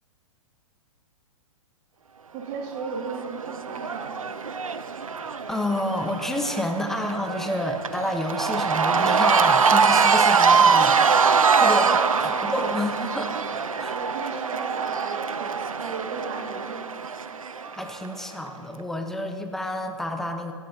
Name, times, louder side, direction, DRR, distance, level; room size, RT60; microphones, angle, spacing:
voice 1, 2.3-4.2 11.8-12.3 13.9-16.8, right 5 dB, 40° right, 1 dB, 1.9 m, -35 dB
Cheering / Crowd, 2.8-18.1, right 5 dB, 85° right, 0.5 m, -23 dB
voice 2, 5.2-11.0 11.3-13.4 13.8-14.0 17.7-20.5, left 1 dB, ahead, 4 dB, 0.9 m, -29 dB
16.5 x 13.0 x 2.7 m, 2.4 s
figure-of-eight pair, 110°, 17 cm